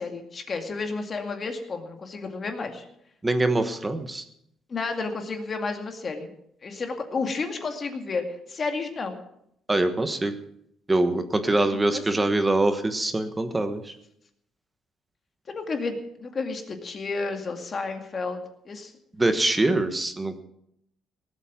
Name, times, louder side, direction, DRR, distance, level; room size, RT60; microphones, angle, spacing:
voice 1, 0.0-2.8 4.7-6.3 6.6-9.2 11.7-12.3 15.5-18.9, left 4 dB, 35° left, 5 dB, 2.1 m, -31 dB
voice 2, 3.2-4.2 9.7-10.4 10.9-13.9 19.2-20.4, right 2 dB, 15° right, 9 dB, 1.3 m, -24 dB
18.0 x 8.2 x 7.3 m, 0.74 s
cardioid pair, 135°, 0 cm